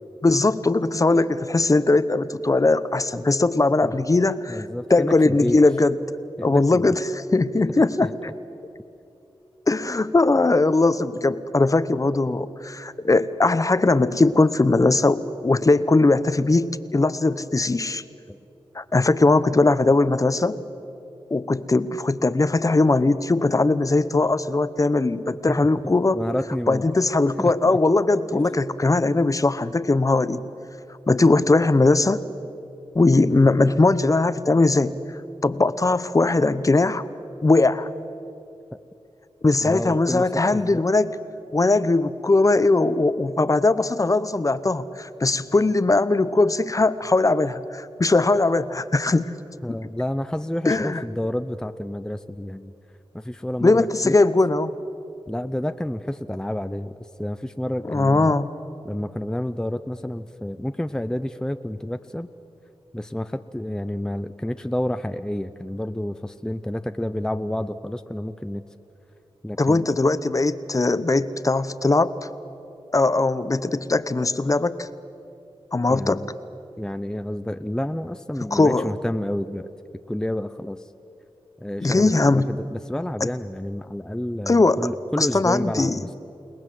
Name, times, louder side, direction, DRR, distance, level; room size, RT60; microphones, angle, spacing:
voice 1, 0.2-6.0 6.4-8.3 9.7-18.0 18.7-20.6 21.3-26.2 26.7-30.4 31.1-32.2 32.9-35.0 35.4-37.0 37.4-37.9 39.4-41.2 41.5-49.3 50.7-51.0 53.6-54.7 57.9-58.5 69.6-72.2 72.9-74.9 75.7-76.2 78.5-78.9 81.8-82.5 83.2-83.3 84.5-84.8 85.2-86.0, left 2 dB, 35° left, 14 dB, 0.9 m, -20 dB
voice 2, 4.5-5.6 6.4-7.0 8.2-8.3 18.3-18.4 25.6-26.9 27.4-27.8 28.3-28.4 39.6-40.8 49.6-52.7 53.1-54.1 55.3-58.3 58.8-62.3 62.9-68.6 69.4-69.9 75.9-76.3 76.8-79.7 80.1-80.9 81.6-86.1, left 1 dB, 5° left, 9 dB, 0.7 m, -29 dB
30.0 x 19.0 x 7.7 m, 2.8 s
cardioid pair, 60°, 10 cm